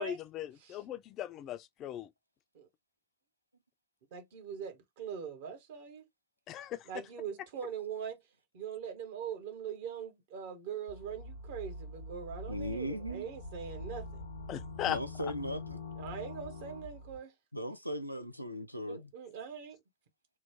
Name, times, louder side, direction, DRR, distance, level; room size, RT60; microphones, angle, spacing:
voice 1, 0.0-2.1 6.5-6.9 14.5-15.0, left 11 dB, 35° left, 0.4 m, -38 dB
voice 2, 4.1-6.1 6.9-8.2 8.5-14.2 16.0-17.3 18.9-19.8, right 7 dB, 55° right, 1.0 m, -42 dB
sound 1, 10.9-17.2, left 2 dB, 80° left, 0.6 m, -44 dB
voice 3, 12.5-13.3 14.9-15.8 17.5-19.1, equal, 90° right, 0.3 m, -38 dB
3.1 x 2.2 x 3.4 m
figure-of-eight pair, 90°, 0 cm